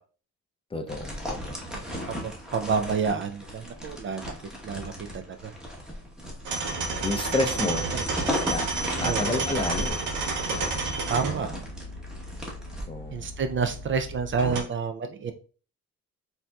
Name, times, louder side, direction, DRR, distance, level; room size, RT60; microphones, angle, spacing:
voice 1, 0.7-1.6 7.0-7.9 8.5-8.7 9.0-10.0 10.5-10.8 12.9-13.3, left 2 dB, 20° left, 4 dB, 0.5 m, -30 dB
sound 1, 0.9-12.8, left 1 dB, ahead, 1.0 m, -36 dB
voice 2, 2.1-4.3 4.6-5.5 7.9-8.0 8.8-9.2 11.1-11.5 13.1-15.3, right 5 dB, 40° right, 7 dB, 0.4 m, -29 dB
sound 2, 6.5-14.6, right 3 dB, 85° right, 0.9 m, -31 dB
4.2 x 2.6 x 2.2 m, 0.38 s
cardioid pair, 90°, 30 cm